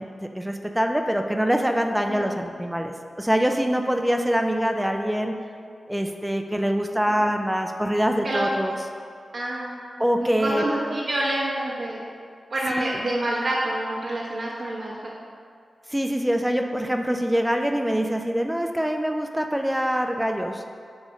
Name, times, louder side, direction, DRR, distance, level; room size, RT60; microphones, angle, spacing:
voice 1, 0.0-5.4 5.9-8.7 10.0-10.6 12.7-13.0 15.9-20.6, equal, 5° right, 4 dB, 0.6 m, -24 dB
voice 2, 9.3-9.8 10.2-12.1 12.5-15.1, right 1 dB, 65° right, -7 dB, 1.3 m, -27 dB
9.0 x 3.5 x 5.3 m, 2.2 s
cardioid pair, 55°, 0 cm